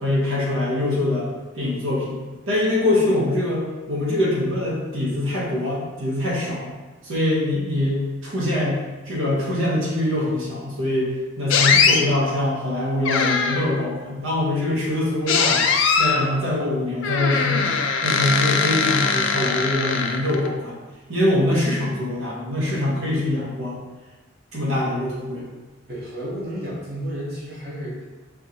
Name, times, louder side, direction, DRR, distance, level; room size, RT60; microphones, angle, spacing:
voice 1, 0.0-1.3 1.5-2.2 2.5-6.7 7.0-8.8 9.0-15.7 16.0-17.7 18.0-20.8 21.1-23.8 24.5-25.5, left 1 dB, 85° right, -5 dB, 1.2 m, -23 dB
sound 1, 11.5-12.0 13.0-13.8 15.3-16.2 17.0-20.5, left 5 dB, 70° left, 0.3 m, -21 dB
voice 2, 25.9-28.0, equal, 50° right, -7 dB, 0.9 m, -32 dB
4.6 x 2.5 x 2.8 m, 1.2 s
head